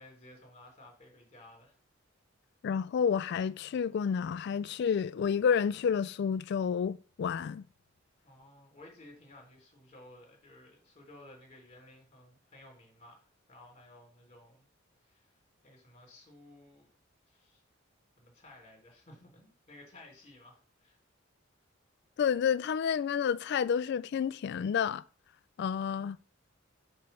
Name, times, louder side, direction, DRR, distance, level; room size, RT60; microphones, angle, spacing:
voice 1, 0.0-1.8 8.2-14.7 15.0-15.3 15.6-16.9 17.3-17.6 18.2-21.0, left 1 dB, 30° left, 3.2 m, -55 dB
voice 2, 2.6-7.7 22.2-25.0 25.6-26.2, left 7 dB, 55° left, 0.3 m, -30 dB
7.9 x 3.2 x 5.5 m
head